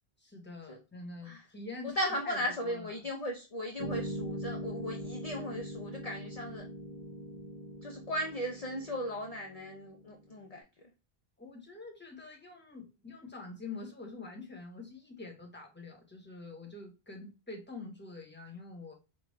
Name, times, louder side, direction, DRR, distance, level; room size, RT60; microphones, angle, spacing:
voice 1, 0.2-3.1 11.4-18.9, left 3 dB, 10° left, 1 dB, 1.1 m, -46 dB
voice 2, 1.8-6.6 7.8-10.6, left 1 dB, 40° left, 0 dB, 0.7 m, -37 dB
sound 1, 3.8-10.3, equal, 50° right, 0.9 m, -41 dB
5.2 x 2.3 x 3.1 m, 0.30 s
omnidirectional pair, 1.1 m